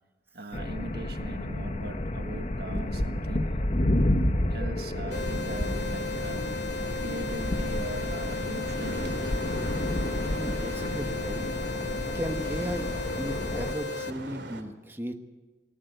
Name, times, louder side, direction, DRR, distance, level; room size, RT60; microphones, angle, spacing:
voice 1, 0.3-3.6 4.5-6.5 6.9-9.4 11.4-11.5 11.9-12.0, right 2 dB, 60° right, 7 dB, 1.6 m, -40 dB
sound 1, 0.5-13.7, left 1 dB, 40° left, 1.0 m, -30 dB
sound 2, 5.1-14.1, left 4 dB, 65° left, 1.3 m, -36 dB
sound 3, 5.1-14.6, right 2 dB, 80° right, 2.7 m, -41 dB
voice 2, 10.3-11.5 12.1-12.9 13.1-15.2, equal, 15° right, 5 dB, 1.2 m, -36 dB
20.0 x 19.0 x 8.1 m, 1.3 s
head